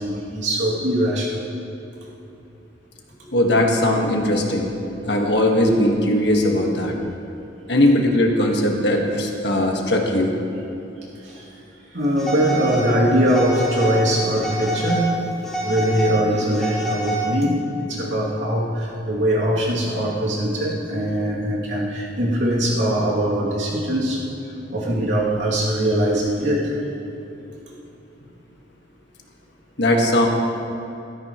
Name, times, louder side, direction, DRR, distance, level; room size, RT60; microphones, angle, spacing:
voice 1, 0.0-1.4 11.3-11.4 11.9-15.2 15.6-24.2 24.7-26.7, right 1 dB, 85° right, -5 dB, 2.7 m, -22 dB
voice 2, 3.3-4.7 5.0-7.0 7.7-10.3 29.8-30.3, left 1 dB, 65° left, 1 dB, 1.6 m, -19 dB
Telephone, 12.2-12.9 13.3-14.0 14.3-15.1 15.4-17.5, right 1 dB, 5° left, 3.1 m, -27 dB
16.0 x 13.5 x 3.1 m, 2.8 s
head